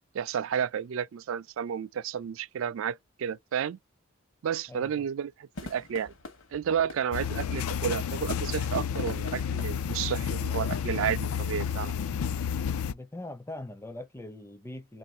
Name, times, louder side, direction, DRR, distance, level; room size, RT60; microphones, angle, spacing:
voice 1, 0.1-3.8 4.4-6.1 6.5-11.9, right 8 dB, 65° right, 0.3 m, -31 dB
sound 1, 5.5-10.9, left 2 dB, 60° left, 0.9 m, -47 dB
sound 2, 7.1-12.9, left 7 dB, 80° left, 0.4 m, -31 dB
voice 2, 12.9-15.0, left 1 dB, 10° left, 0.4 m, -41 dB
3.2 x 2.6 x 4.2 m
head